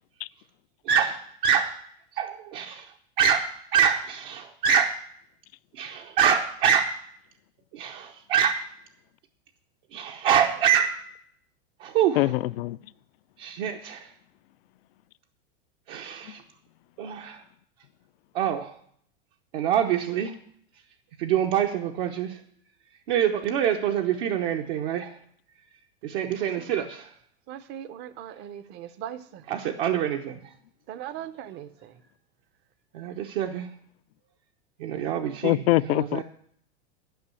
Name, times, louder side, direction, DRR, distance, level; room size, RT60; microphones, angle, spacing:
voice 1, 0.8-1.8 2.1-5.0 5.7-7.0 7.7-8.6 9.9-11.0 11.8-12.4 13.4-14.1 15.9-16.4 17.0-17.4 18.3-18.7 19.5-20.4 21.2-22.4 23.1-25.2 26.0-27.1 29.5-30.5 32.9-33.7 34.8-36.2, right 8 dB, 60° right, 0.9 m, -25 dB
voice 2, 27.5-29.4 30.9-31.9, right 10 dB, 35° right, 0.7 m, -39 dB
voice 3, 35.4-36.2, left 18 dB, 65° left, 0.5 m, -22 dB
11.5 x 5.4 x 8.3 m
supercardioid pair, 135°, 32 cm